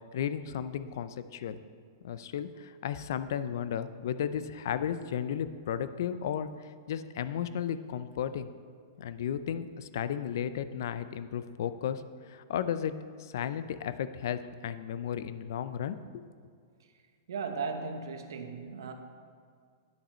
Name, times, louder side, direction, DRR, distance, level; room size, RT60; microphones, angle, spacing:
voice 1, 0.1-1.6 2.0-6.5 6.9-8.5 9.0-12.9 13.2-16.2, left 9 dB, 60° left, 13 dB, 0.4 m, -34 dB
voice 2, 17.3-18.9, right 5 dB, 85° right, 6 dB, 1.0 m, -36 dB
10.5 x 5.9 x 4.3 m, 2.1 s
supercardioid pair, 165°, 2 cm